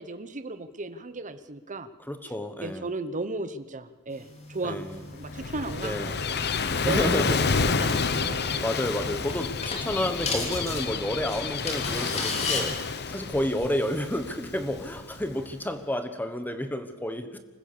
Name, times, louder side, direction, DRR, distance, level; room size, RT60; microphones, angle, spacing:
voice 1, 0.0-1.9 2.6-4.8 5.1-6.2 6.8-7.1 7.7-8.6, right 3 dB, 35° right, 12 dB, 1.1 m, -35 dB
voice 2, 2.0-2.9 4.6-5.0 5.8-6.3 6.8-7.4 8.6-17.4, left 1 dB, 10° left, 9 dB, 1.3 m, -30 dB
sound 1, 4.1-12.6, left 3 dB, 30° left, 3.2 m, -37 dB
Gull seagull / Waves surf, 5.0-15.5, left 4 dB, 50° left, 1.0 m, -30 dB
26.0 x 15.0 x 6.9 m, 1.2 s
head